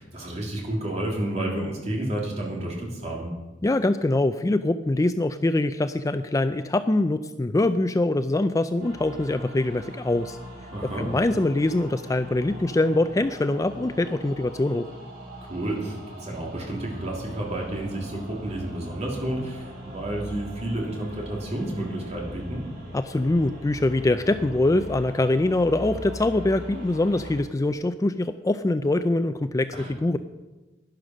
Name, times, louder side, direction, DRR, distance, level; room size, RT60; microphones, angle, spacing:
voice 1, 0.0-3.3 10.7-11.1 15.4-22.6 29.7-29.9, right 1 dB, 40° right, -2 dB, 3.4 m, -31 dB
voice 2, 3.6-10.4 11.0-14.9 22.9-30.2, left 2 dB, 20° left, 10 dB, 0.4 m, -23 dB
sound 1, 8.8-27.3, equal, 55° right, 5.7 m, -41 dB
11.5 x 11.0 x 6.2 m, 1.1 s
head